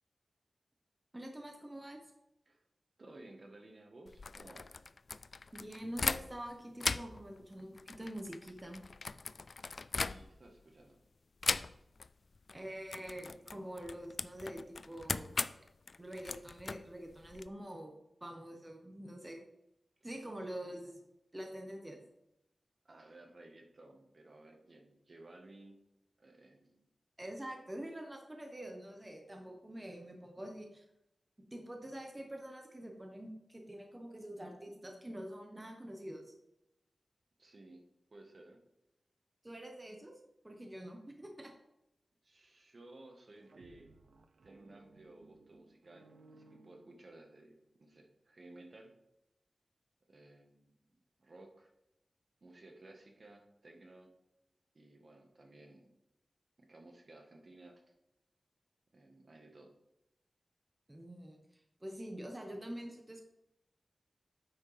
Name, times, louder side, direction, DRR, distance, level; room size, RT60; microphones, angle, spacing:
voice 1, 1.1-2.0 5.5-8.8 12.5-15.4 16.0-19.4 20.0-21.0 21.3-22.0 27.2-30.8 31.5-36.3 39.4-40.2 40.4-41.5 60.9-63.2, right 1 dB, 20° right, 2 dB, 1.2 m, -46 dB
voice 2, 3.0-4.7 9.9-11.0 22.8-25.8 26.2-26.9 37.4-37.8 38.1-38.6 42.2-43.9 44.4-48.9 50.1-50.9 51.2-51.7 52.4-54.1 54.7-55.9 56.6-57.8 58.9-59.7, right 2 dB, 55° right, 2 dB, 1.3 m, -56 dB
sound 1, 4.1-6.5 6.8-10.6 11.4-12.1 12.3-12.6 12.9-17.5, left 4 dB, 60° left, 0.3 m, -39 dB
sound 2, 43.2-47.5, right 3 dB, 85° right, 0.5 m, -62 dB
9.0 x 6.4 x 3.4 m, 0.87 s
wide cardioid pair, 80°, 0 cm